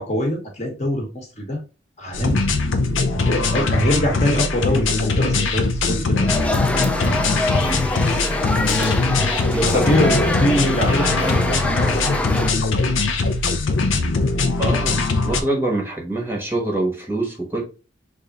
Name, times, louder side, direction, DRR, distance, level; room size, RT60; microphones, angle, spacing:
voice 1, 0.0-1.6 2.0-2.4 3.1-6.3 7.0-7.2 9.6-12.2, equal, 35° left, 1.0 m, -23 dB
sound 1, 2.1-15.4, left 3 dB, 85° left, 0.6 m, -21 dB
sound 2, 6.3-12.5, left 1 dB, 5° left, 0.3 m, -25 dB
voice 2, 9.5-9.9 14.6-17.6, right 2 dB, 10° right, 0.9 m, -25 dB
3.4 x 2.5 x 3.9 m
head